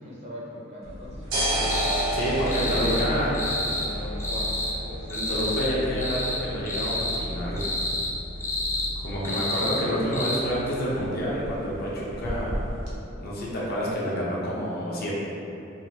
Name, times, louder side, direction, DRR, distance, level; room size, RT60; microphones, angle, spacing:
voice 1, 0.0-1.6 2.3-3.4 3.7-5.2, equal, 35° right, -6 dB, 0.6 m, -39 dB
sound 1, 0.8-12.9, equal, 75° right, 0.7 m, -32 dB
sound 2, 1.7-2.0 2.5-3.1 3.3-3.9 4.2-4.7 5.1-5.7 6.0-6.4 6.7-7.2 7.6-8.1 8.4-8.9 9.2-9.8 10.1-10.4, left 1 dB, 15° left, 0.4 m, -29 dB
voice 2, 2.1-3.3 5.1-7.7 9.0-12.5 13.2-15.2, equal, 50° left, -6 dB, 0.7 m, -28 dB
3.7 x 2.3 x 2.8 m, 2.8 s
head